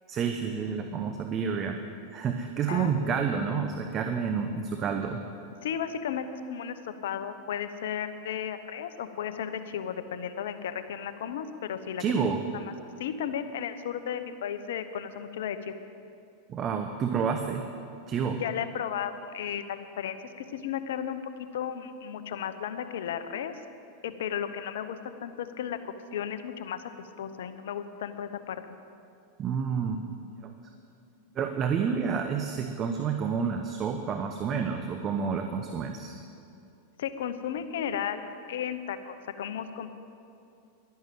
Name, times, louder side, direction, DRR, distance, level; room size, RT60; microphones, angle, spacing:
voice 1, 0.1-1.8 2.1-5.2 12.0-12.4 16.5-17.6 18.1-18.4 29.4-30.0 30.4-30.5 31.3-36.2, right 6 dB, 35° right, 5 dB, 0.9 m, -29 dB
voice 2, 2.7-3.0 5.6-12.2 13.0-15.8 18.4-20.2 20.5-21.2 21.5-23.5 24.0-25.8 26.1-26.8 27.2-28.6 37.0-39.9, left 8 dB, 75° left, 10 dB, 0.9 m, -34 dB
11.5 x 11.5 x 7.7 m, 2.6 s
hypercardioid pair, 105°, 0 cm